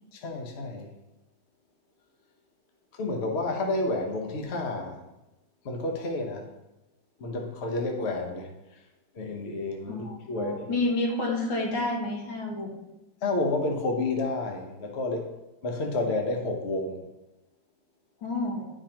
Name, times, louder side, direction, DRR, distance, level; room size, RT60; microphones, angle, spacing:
voice 1, 0.1-0.9 2.9-5.0 5.6-6.5 7.2-8.5 9.1-10.8 13.2-15.3 15.6-17.0, left 2 dB, 50° left, 2 dB, 0.8 m, -30 dB
voice 2, 9.9-12.7 18.2-18.7, left 2 dB, 65° left, -1 dB, 2.1 m, -29 dB
11.0 x 5.0 x 2.9 m, 0.97 s
omnidirectional pair, 2.3 m